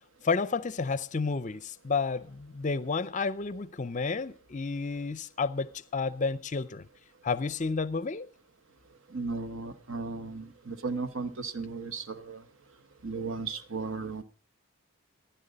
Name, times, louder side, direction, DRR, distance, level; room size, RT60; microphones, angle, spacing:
voice 1, 0.2-6.9 7.2-8.3, left 4 dB, 35° left, 0.5 m, -31 dB
voice 2, 9.1-12.4 13.0-14.2, right 4 dB, 60° right, 1.1 m, -35 dB
15.5 x 10.5 x 5.2 m
head